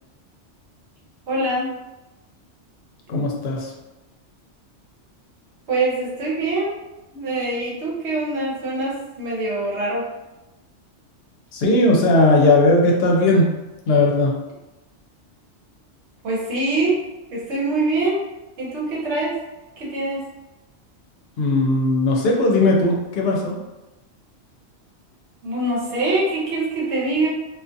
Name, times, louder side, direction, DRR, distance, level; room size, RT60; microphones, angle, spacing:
voice 1, 1.3-1.7 5.7-6.8 7.1-10.1 16.2-17.0 17.3-18.2 18.6-19.3 19.8-20.2 25.4-27.3, right 2 dB, 70° right, -4 dB, 1.0 m, -24 dB
voice 2, 3.1-3.7 11.5-13.5 13.9-14.3 21.4-23.6, left 2 dB, 65° left, 0 dB, 0.8 m, -17 dB
2.4 x 2.4 x 2.5 m, 1.0 s
omnidirectional pair, 1.2 m